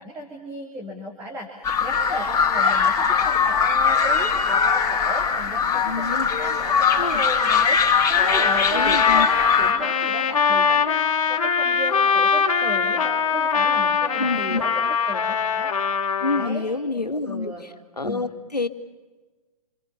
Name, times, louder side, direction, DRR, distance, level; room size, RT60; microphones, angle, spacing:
voice 1, 0.0-15.7 16.3-17.7 18.0-18.3, right 1 dB, 15° right, 0 dB, 2.9 m, -36 dB
sound 1, 1.6-9.7, left 6 dB, 15° left, 4.2 m, -20 dB
voice 2, 5.8-6.3 7.0-7.2 8.7-9.3 14.2-14.6 16.2-17.5 18.0-18.7, left 3 dB, 90° left, 9 dB, 1.8 m, -27 dB
Trumpet, 8.2-16.5, left 6 dB, 60° left, 2.4 m, -22 dB
27.5 x 26.0 x 5.8 m, 1.3 s
figure-of-eight pair, 130°, 20 cm